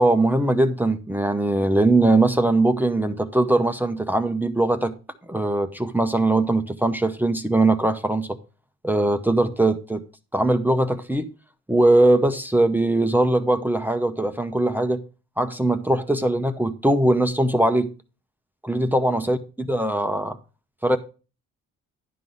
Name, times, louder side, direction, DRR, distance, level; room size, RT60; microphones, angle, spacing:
voice 1, 0.0-4.9 5.3-8.4 8.8-10.0 10.3-11.3 11.7-15.0 15.4-17.9 18.6-19.4 19.7-20.4 20.8-21.0, right 2 dB, 5° right, 0.8 m, -21 dB
11.0 x 3.8 x 6.3 m
cardioid pair, 90°, 30 cm